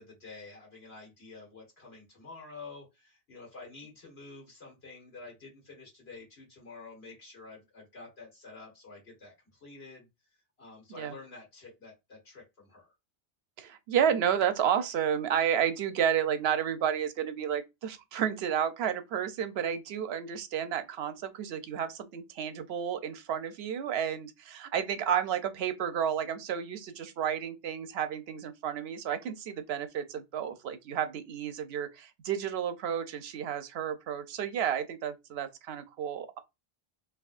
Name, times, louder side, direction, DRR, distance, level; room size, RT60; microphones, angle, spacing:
voice 1, 0.0-10.1 10.6-12.9, left 3 dB, 75° left, 1.8 m, -49 dB
voice 2, 13.6-36.4, right 8 dB, 80° right, 0.8 m, -31 dB
3.5 x 2.8 x 2.4 m
omnidirectional pair, 1.1 m